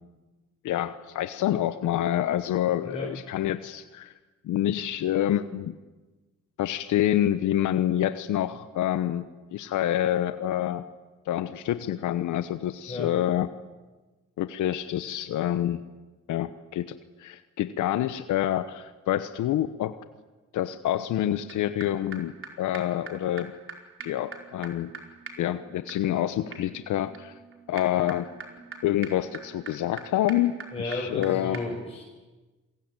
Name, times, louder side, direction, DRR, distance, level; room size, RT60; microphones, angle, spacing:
voice 1, 0.6-4.1 4.4-5.7 6.6-10.8 11.3-13.5 14.4-15.8 16.3-20.0 20.5-22.3 22.6-23.5 24.0-24.9 25.4-27.4 27.7-28.3 28.8-31.6, left 12 dB, 80° left, 12 dB, 1.1 m, -27 dB
sound 1, 21.5-21.6 21.8-21.9 22.1-22.2 22.4-22.5 22.7-22.8 23.1-23.2 23.4-23.5 23.7-23.8 24.0-31.3 31.5-31.6, right 4 dB, 45° right, 4.8 m, -44 dB
voice 2, 30.7-32.1, left 2 dB, 20° left, -3 dB, 6.4 m, -33 dB
27.5 x 22.0 x 9.0 m, 1.2 s
cardioid pair, 90°, 30 cm